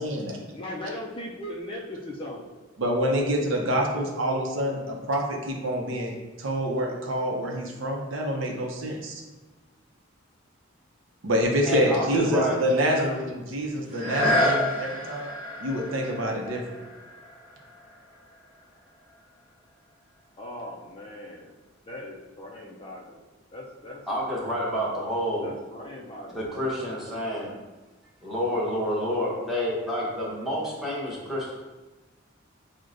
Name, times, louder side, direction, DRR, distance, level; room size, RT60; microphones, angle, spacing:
voice 1, 0.0-0.4 2.8-4.8 5.1-9.1 11.2-15.3 15.6-16.8, equal, 70° right, 0 dB, 0.6 m, -27 dB
voice 2, 0.5-2.5 20.4-21.5 21.9-23.2 23.5-24.1 25.4-26.4, left 1 dB, 25° left, -1 dB, 0.3 m, -39 dB
voice 3, 11.7-13.1 24.1-25.5 26.3-27.5 28.2-31.5, equal, ahead, -6 dB, 0.9 m, -28 dB
sound 1, 13.9-19.5 20.1-20.2, left 1 dB, 15° right, 1.3 m, -30 dB
6.1 x 2.1 x 2.5 m, 1.2 s
head